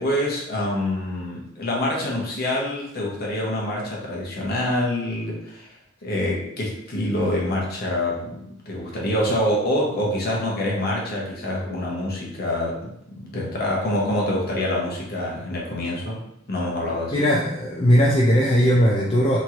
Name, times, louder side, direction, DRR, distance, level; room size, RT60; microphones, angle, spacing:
voice 1, 0.0-5.7 6.0-17.2, left 1 dB, 45° left, -3 dB, 0.8 m, -26 dB
voice 2, 17.1-19.4, equal, 25° left, -4 dB, 0.3 m, -18 dB
2.9 x 2.9 x 2.4 m, 0.78 s
head